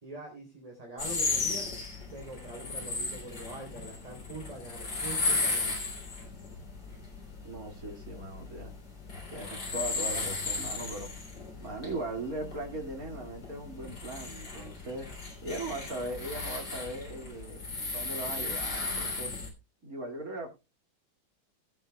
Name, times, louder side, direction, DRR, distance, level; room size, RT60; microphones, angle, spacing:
voice 1, 0.0-1.7 2.1-5.8, right 2 dB, 15° right, 0 dB, 3.3 m, -43 dB
sound 1, 1.0-19.5, left 3 dB, 55° left, 4.2 m, -35 dB
voice 2, 7.4-8.7 9.3-11.1 11.6-15.1 15.4-17.7 17.9-19.3 19.8-20.5, right 2 dB, 40° right, 2 dB, 2.7 m, -39 dB
20.0 x 9.1 x 2.3 m, 0.26 s
omnidirectional pair, 2.3 m